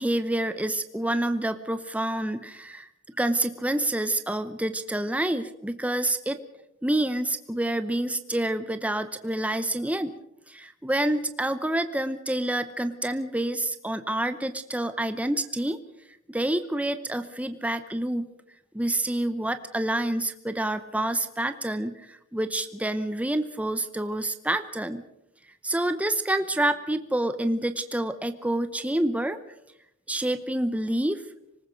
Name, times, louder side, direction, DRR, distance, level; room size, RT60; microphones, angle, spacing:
voice 1, 0.0-2.9 3.2-6.4 6.8-10.1 10.5-15.8 16.3-18.3 18.7-25.0 25.6-29.4 30.1-31.2, right 1 dB, 5° right, 10 dB, 0.8 m, -28 dB
26.0 x 19.5 x 5.2 m, 0.80 s
head